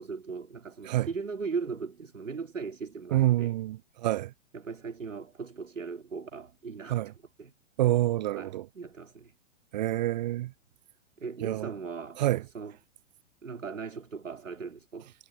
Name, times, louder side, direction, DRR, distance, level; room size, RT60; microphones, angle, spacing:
voice 1, 0.0-3.5 4.5-7.1 7.4-7.5 8.4-9.3 11.2-12.8 13.4-15.1, right 5 dB, 80° right, 2.8 m, -38 dB
voice 2, 3.1-4.3 6.9-7.1 7.8-8.7 9.7-10.5 11.4-11.7 12.2-12.4, right 15 dB, 40° right, 0.4 m, -27 dB
figure-of-eight pair, 110°, 38 cm